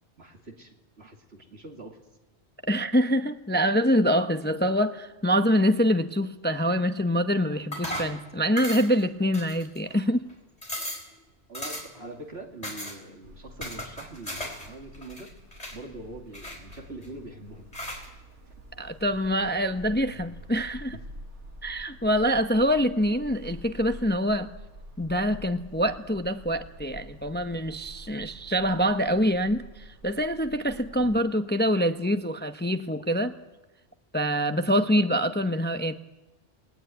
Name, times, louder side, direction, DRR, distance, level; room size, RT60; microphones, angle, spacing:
voice 1, 0.2-2.0 11.5-15.3 15.7-17.6 31.0-31.2, right 2 dB, 60° right, 2 dB, 2.9 m, -43 dB
voice 2, 2.7-10.3 18.8-21.0 21.6-24.5 25.0-33.3 34.1-36.0, equal, 10° left, 8 dB, 0.8 m, -25 dB
sound 1, 7.7-8.2 8.6-9.0 9.3-9.9 10.3-10.4 10.6-11.1 11.5-12.0 12.6-13.0 13.6-14.7 14.9-15.8 16.3-17.1 17.7-18.1, left 1 dB, 30° left, 4.7 m, -36 dB
sound 2, 13.2-31.2, equal, 80° right, 2.5 m, -47 dB
29.5 x 19.0 x 9.3 m, 1.1 s
omnidirectional pair, 1.2 m